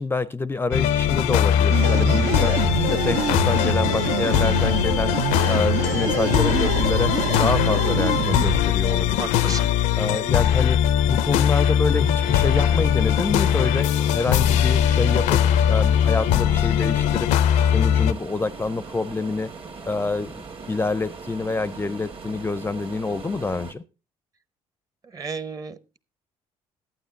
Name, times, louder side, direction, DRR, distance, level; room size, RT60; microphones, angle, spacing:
voice 1, 0.0-2.6 2.9-5.2 5.5-9.6 10.0-17.3 17.6-19.5 19.9-23.8, left 3 dB, 20° left, 17 dB, 0.4 m, -27 dB
sound 1, 0.7-18.1, left 10 dB, 80° left, 0.4 m, -20 dB
sound 2, 1.7-8.6, right 10 dB, 75° right, 0.5 m, -26 dB
voice 2, 9.2-9.7 25.0-26.0, right 4 dB, 30° right, 15 dB, 0.8 m, -33 dB
sound 3, 11.9-23.7, right 4 dB, 50° right, 1.5 m, -40 dB
11.5 x 8.9 x 3.7 m, 0.30 s
supercardioid pair, 75°, 12 cm